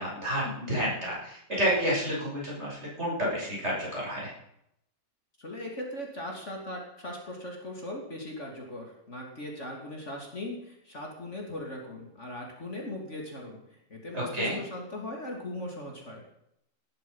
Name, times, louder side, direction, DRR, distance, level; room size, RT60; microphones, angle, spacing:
voice 1, 0.0-4.3 14.1-14.6, equal, 40° right, -5 dB, 7.5 m, -30 dB
voice 2, 5.4-13.6 13.9-16.2, left 1 dB, 40° left, 0 dB, 3.2 m, -39 dB
19.0 x 12.0 x 5.6 m, 0.77 s
omnidirectional pair, 1.9 m